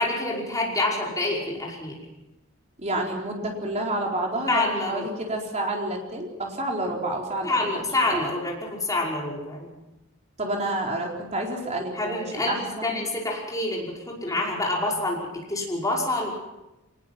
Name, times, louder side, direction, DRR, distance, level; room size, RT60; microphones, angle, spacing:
voice 1, 0.0-2.0 4.5-5.0 7.4-9.7 11.9-12.6 12.8-16.3, left 2 dB, 15° left, -2 dB, 5.5 m, -27 dB
voice 2, 2.8-7.7 8.1-8.2 10.4-13.0, right 1 dB, 35° right, 0 dB, 4.4 m, -29 dB
23.5 x 20.0 x 6.0 m, 0.97 s
head